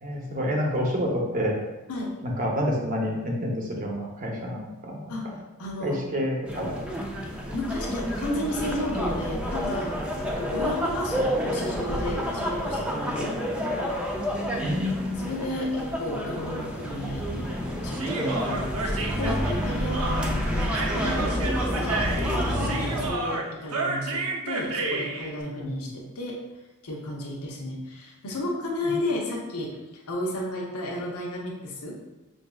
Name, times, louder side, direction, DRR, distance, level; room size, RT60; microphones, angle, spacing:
voice 1, 0.0-1.6 2.2-5.3 5.8-6.7 14.6-15.2 25.6-25.7 28.9-29.0, equal, 35° right, -1 dB, 0.7 m, -28 dB
voice 2, 5.1-6.0 7.5-13.4 15.2-17.5 17.8-20.3 20.7-26.4 26.8-32.0, left 1 dB, 85° left, -2 dB, 0.7 m, -33 dB
sound 1, 6.4-23.1, equal, 5° right, 0.3 m, -29 dB
Human voice, 17.9-25.3, right 3 dB, 70° right, 0.5 m, -31 dB
5.9 x 2.6 x 2.3 m, 1.0 s
head